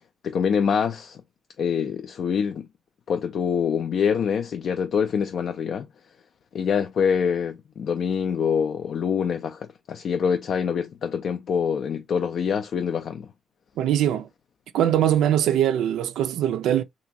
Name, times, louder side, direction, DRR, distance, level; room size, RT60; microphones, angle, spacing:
voice 1, 0.2-1.2 1.6-2.7 3.1-5.9 6.5-13.3, left 7 dB, 60° left, 0.3 m, -25 dB
voice 2, 13.8-14.3 14.7-16.8, right 10 dB, 85° right, 0.3 m, -22 dB
2.9 x 2.5 x 2.6 m
cardioid pair, 90°, 0 cm